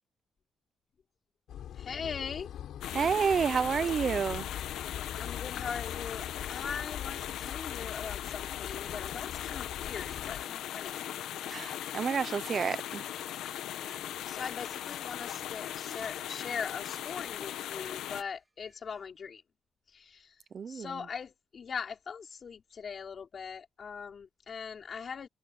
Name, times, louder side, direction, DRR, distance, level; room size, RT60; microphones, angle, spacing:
sound 1, 1.5-10.4, left 10 dB, 75° left, 7.2 m, -42 dB
voice 1, 1.8-2.5 5.0-11.1 14.2-19.4 19.9-20.3 20.7-25.3, left 6 dB, 45° left, 5.1 m, -41 dB
sound 2, 2.8-18.2, left 11 dB, 90° left, 1.5 m, -39 dB
voice 2, 2.9-4.5 11.5-13.0 20.5-21.0, right 6 dB, 45° right, 0.7 m, -29 dB
sound 3, 10.1-10.4 11.5-11.9 12.7-13.0 13.9-14.1 15.1-15.2 16.0-16.2 16.9-17.1 18.2-19.1, right 2 dB, 15° right, 6.5 m, -59 dB
cardioid pair, 125°, 0 cm